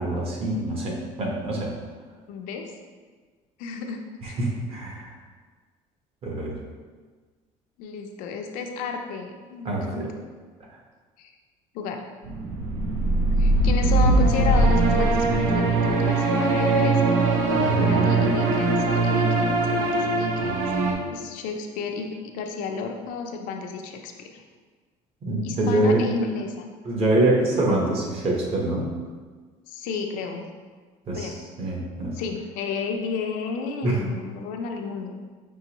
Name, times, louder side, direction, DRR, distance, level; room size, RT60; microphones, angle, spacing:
voice 1, 0.0-1.7 4.2-5.1 6.2-6.5 9.6-10.1 17.5-18.3 25.2-26.0 26.8-28.9 31.1-32.2 33.8-34.0, right 2 dB, 45° right, -1 dB, 1.0 m, -25 dB
voice 2, 2.3-2.7 3.6-4.4 7.8-10.1 11.2-11.3 11.7-12.0 13.4-17.2 17.7-20.7 21.1-24.4 25.4-26.7 29.7-30.5 31.1-31.3 32.2-35.1, left 5 dB, 80° left, 3 dB, 0.5 m, -32 dB
sound 1, 12.2-20.9, right 2 dB, 80° right, 0.7 m, -21 dB
5.4 x 3.0 x 2.9 m, 1.5 s
cardioid pair, 145°, 14 cm